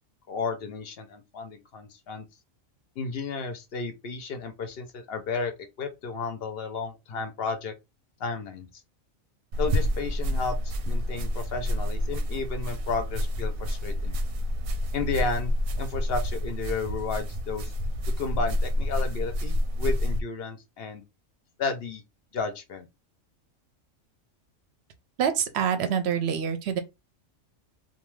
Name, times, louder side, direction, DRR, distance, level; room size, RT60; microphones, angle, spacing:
voice 1, 0.3-2.2 3.0-5.5 5.8-7.7 8.2-8.7 9.6-14.2 14.9-17.6 18.2-21.0 21.6-22.0 22.3-22.9, left 4 dB, 60° left, 0.7 m, -33 dB
sound 1, 9.5-20.2, equal, 85° right, 1.0 m, -28 dB
voice 2, 25.2-26.8, right 8 dB, 65° right, 0.7 m, -26 dB
2.6 x 2.2 x 3.1 m
omnidirectional pair, 1.4 m